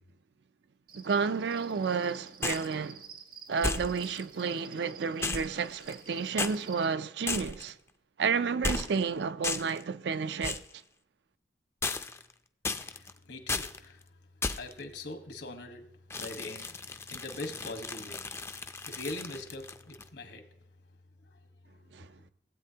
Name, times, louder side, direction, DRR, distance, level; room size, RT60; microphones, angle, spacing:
Cricket, 0.9-6.9, right 7 dB, 50° right, 0.8 m, -51 dB
voice 1, 0.9-3.0 3.5-7.8 8.2-10.6 21.9-22.1, right 5 dB, 70° right, 0.4 m, -31 dB
sound 1, 2.4-2.7 3.6-4.2 5.2-6.1 6.4-6.6 7.3-7.7 8.6-9.1 9.4-9.8 10.4-10.7 11.8-12.3 12.6-13.1 13.5-13.8 14.4-14.8 16.1-20.1, left 3 dB, 15° left, 0.4 m, -35 dB
voice 2, 12.8-14.0 14.6-15.9 16.1-16.8 17.1-18.2 18.8-20.5 21.3-21.4, left 2 dB, 75° left, 1.4 m, -42 dB
16.0 x 8.4 x 2.8 m
head